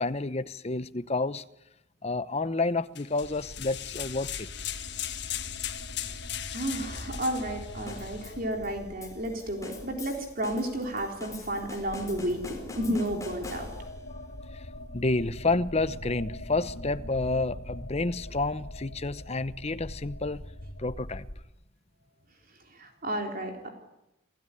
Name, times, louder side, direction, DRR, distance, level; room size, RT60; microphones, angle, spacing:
voice 1, 0.0-1.4 2.0-4.5 14.1-14.7 14.9-20.5 20.8-21.3, left 3 dB, 30° left, 0.8 m, -30 dB
sound 1, 3.0-8.3, left 12 dB, 60° left, 1.6 m, -38 dB
sound 2, 3.2-21.4, left 1 dB, 75° left, 2.6 m, -43 dB
voice 2, 6.5-13.7 22.7-23.7, right 1 dB, 45° right, 3.8 m, -32 dB
sound 3, 7.9-14.1, left 3 dB, 15° left, 4.4 m, -45 dB
28.0 x 16.0 x 9.9 m
head